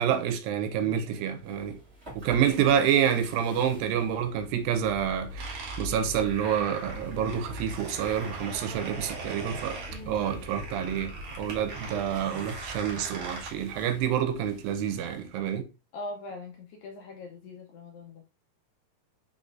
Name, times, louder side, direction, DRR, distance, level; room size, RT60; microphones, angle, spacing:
voice 1, 0.0-1.8 2.2-9.8 10.1-11.1 11.4-15.7, right 9 dB, 85° right, 2.4 m, -28 dB
sound 1, 1.3-15.2, right 1 dB, 25° right, 1.6 m, -45 dB
sound 2, 5.4-13.5, right 3 dB, 60° right, 1.6 m, -41 dB
voice 2, 9.9-10.2 15.9-18.2, left 2 dB, 75° left, 1.7 m, -41 dB
5.5 x 3.9 x 2.5 m
omnidirectional pair, 4.0 m